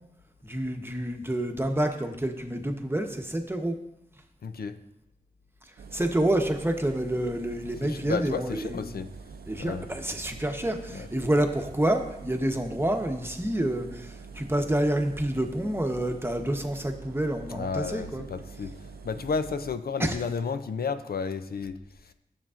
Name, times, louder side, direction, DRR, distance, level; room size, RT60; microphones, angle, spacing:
voice 1, 0.4-3.8 5.9-8.8 9.5-18.2 20.0-20.2, right 1 dB, 15° right, 4 dB, 0.9 m, -28 dB
voice 2, 4.4-4.8 7.8-9.1 9.6-9.9 10.9-11.1 17.5-22.1, left 5 dB, 85° left, 10 dB, 0.5 m, -32 dB
Engine, 5.8-19.8, right 4 dB, 85° right, 0.5 m, -45 dB
12.0 x 7.2 x 2.5 m, 0.85 s
wide cardioid pair, 70°, 15 cm